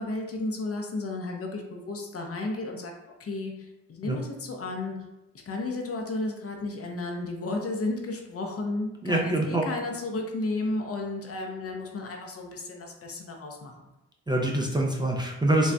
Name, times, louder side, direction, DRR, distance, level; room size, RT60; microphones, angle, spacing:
voice 1, 0.0-5.0 5.5-13.9, left 2 dB, 45° left, 1 dB, 0.7 m, -33 dB
voice 2, 9.0-9.6 14.3-15.7, right 1 dB, 15° right, -1 dB, 0.5 m, -25 dB
4.0 x 2.3 x 2.2 m, 0.96 s
supercardioid pair, 45°, 33 cm